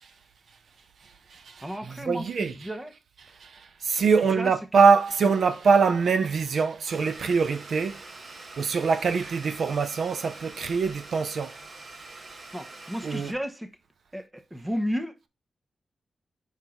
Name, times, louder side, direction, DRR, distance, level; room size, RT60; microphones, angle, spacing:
voice 1, 1.0-2.8 3.2-11.7 13.0-13.3, right 5 dB, 75° right, 0.6 m, -24 dB
voice 2, 1.6-2.9 4.3-4.5 12.5-13.8 14.1-15.3, equal, 10° right, 1.0 m, -33 dB
Domestic sounds home sounds, 6.9-13.3, right 2 dB, 55° right, 1.3 m, -45 dB
5.6 x 4.5 x 3.7 m
cardioid pair, 85°, 0 cm